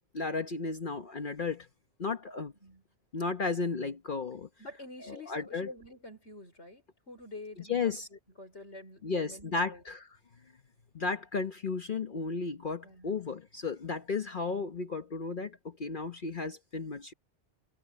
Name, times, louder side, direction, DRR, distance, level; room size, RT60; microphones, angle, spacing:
voice 1, 0.1-1.7 2.0-2.5 3.1-4.5 5.1-5.7 7.7-8.1 9.0-10.1 10.9-17.1, left 4 dB, 50° left, 1.1 m, -34 dB
voice 2, 4.6-9.8 12.8-13.2, left 2 dB, 70° left, 5.3 m, -48 dB
omnidirectional pair, 1.2 m